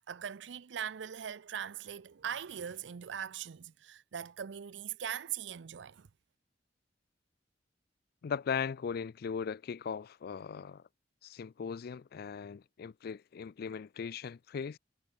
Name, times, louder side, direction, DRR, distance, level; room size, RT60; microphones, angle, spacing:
voice 1, 0.1-6.1, right 8 dB, 70° right, 0.5 m, -41 dB
voice 2, 8.2-10.8 11.2-14.8, left 6 dB, 55° left, 0.4 m, -38 dB
head